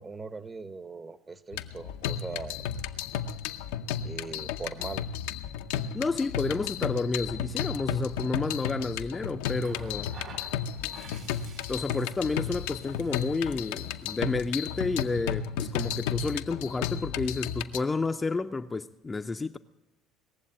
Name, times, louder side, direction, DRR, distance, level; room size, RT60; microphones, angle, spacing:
voice 1, 0.0-2.6 4.0-5.0 10.3-10.4, right 4 dB, 25° right, 0.8 m, -40 dB
sound 1, 1.5-17.8, left 9 dB, 85° left, 0.6 m, -33 dB
voice 2, 5.9-10.1 11.7-19.6, left 3 dB, 20° left, 0.5 m, -30 dB
Water tap faucet, 9.6-15.1 16.3-16.6, right 6 dB, 55° right, 2.2 m, -52 dB
19.5 x 7.4 x 8.8 m
supercardioid pair, 95°, 0 cm